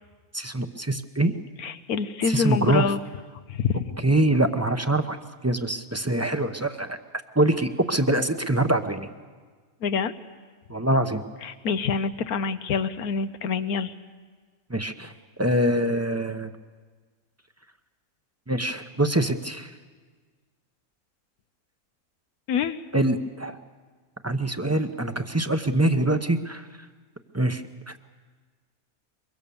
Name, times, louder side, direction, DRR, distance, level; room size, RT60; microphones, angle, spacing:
voice 1, 0.3-1.3 2.3-2.9 4.0-5.2 5.4-7.0 7.4-9.1 10.7-11.2 14.7-15.1 15.4-16.5 18.5-19.7 22.9-23.6 24.2-26.7 27.3-27.9, right 1 dB, 15° right, 8 dB, 0.6 m, -24 dB
voice 2, 1.6-3.0 3.5-3.9 9.8-10.1 11.4-13.9 22.5-22.8, left 6 dB, 90° left, 11 dB, 1.4 m, -26 dB
23.5 x 23.0 x 7.0 m, 1.5 s
omnidirectional pair, 1.5 m